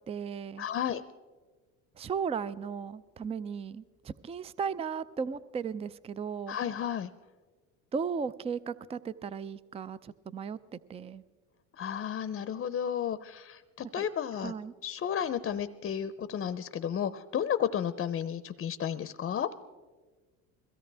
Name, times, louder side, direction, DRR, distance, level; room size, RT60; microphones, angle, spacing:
voice 1, 0.1-0.7 2.0-6.6 7.9-10.6 10.9-11.2 14.0-14.1 14.4-14.7, right 6 dB, 20° right, 17 dB, 0.4 m, -36 dB
voice 2, 0.6-1.0 6.5-7.1 11.8-14.5 14.8-19.5, left 9 dB, 35° left, 13 dB, 0.7 m, -32 dB
22.0 x 16.5 x 3.4 m, 1.4 s
supercardioid pair, 85°, 34 cm